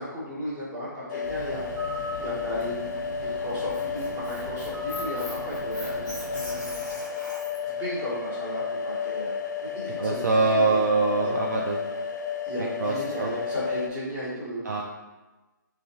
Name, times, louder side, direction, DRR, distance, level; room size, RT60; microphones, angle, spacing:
voice 1, 0.0-2.9 3.2-6.8 7.7-10.8 11.2-11.4 12.4-14.8, equal, 15° right, -9 dB, 1.2 m, -35 dB
sound 1, 1.1-13.9, left 6 dB, 60° left, 0.4 m, -32 dB
Bird, 1.2-7.1, equal, 35° right, 1.4 m, -40 dB
Squeak, 3.5-7.7, left 1 dB, 5° left, 0.9 m, -41 dB
voice 2, 10.0-11.8 12.6-13.3 14.6-14.8, right 3 dB, 55° right, -1 dB, 0.4 m, -24 dB
3.5 x 2.3 x 2.7 m, 1.2 s
figure-of-eight pair, 145°, 11 cm